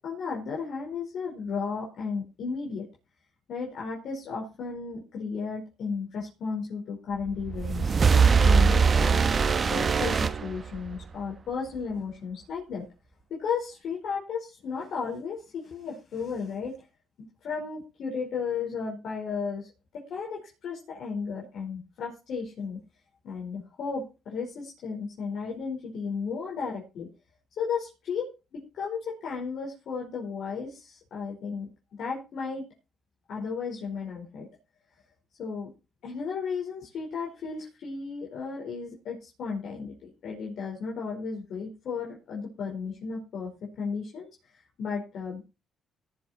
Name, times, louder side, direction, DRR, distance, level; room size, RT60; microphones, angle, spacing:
voice 1, 0.0-2.9 3.5-9.2 9.7-12.9 13.3-16.8 17.2-19.7 19.9-22.8 23.2-27.1 27.6-28.2 28.5-32.6 33.3-34.5 35.4-35.7 36.0-39.9 40.2-43.5 43.8-44.3 44.8-45.4, left 5 dB, 70° left, -4 dB, 4.9 m, -34 dB
sound 1, 7.3-11.1, right 5 dB, 40° right, 1.1 m, -22 dB
17.5 x 7.4 x 4.5 m, 0.29 s
cardioid pair, 90°, 0 cm